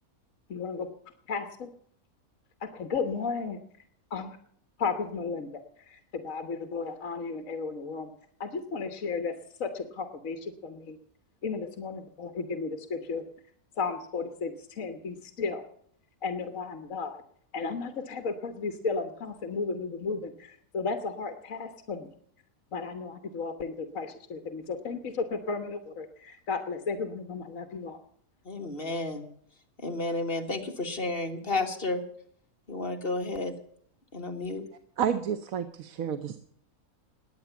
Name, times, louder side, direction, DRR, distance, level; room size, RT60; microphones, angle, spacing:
voice 1, 0.5-0.9 1.3-1.7 2.6-3.6 4.1-4.3 4.8-8.1 8.4-9.3 9.6-11.0 11.4-13.2 13.7-15.6 16.2-17.2 17.5-22.1 22.7-28.0, left 4 dB, 60° left, 8 dB, 1.6 m, -34 dB
voice 2, 28.5-29.3 29.8-32.0 32.7-33.5 34.1-34.6, left 2 dB, 40° left, 4 dB, 1.9 m, -31 dB
voice 3, 35.0-36.4, right 8 dB, 70° right, 10 dB, 1.2 m, -30 dB
20.5 x 8.8 x 7.0 m, 0.63 s
omnidirectional pair, 1.6 m